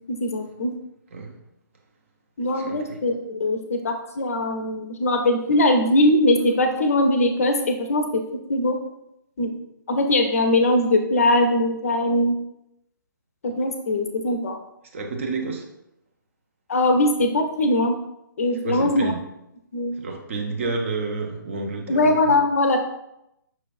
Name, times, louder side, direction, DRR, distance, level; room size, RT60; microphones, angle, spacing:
voice 1, 0.1-0.7 2.4-8.2 8.5-8.8 9.4-9.6 9.9-12.3 13.4-14.6 16.7-18.0 18.4-19.1 19.7-19.9 21.9-22.8, left 1 dB, 45° left, 5 dB, 0.5 m, -21 dB
voice 2, 2.5-3.0 14.9-15.7 18.6-19.2 20.0-22.3, right 3 dB, 35° right, 2 dB, 0.6 m, -30 dB
5.7 x 3.1 x 2.5 m, 0.84 s
figure-of-eight pair, 135°, 11 cm